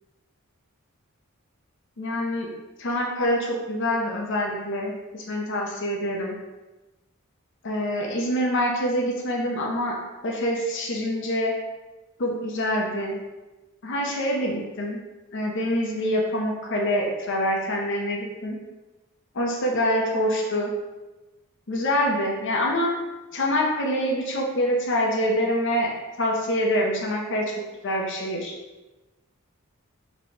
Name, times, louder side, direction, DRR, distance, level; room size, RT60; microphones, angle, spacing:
voice 1, 2.0-2.5 2.8-6.4 7.6-10.0 10.2-11.6 12.2-13.2 13.8-15.0 15.3-18.6 19.3-20.7 21.7-22.9 23.3-25.9 26.2-27.5 27.8-28.6, equal, 60° left, 0 dB, 0.7 m, -25 dB
4.2 x 3.3 x 2.8 m, 1.1 s
head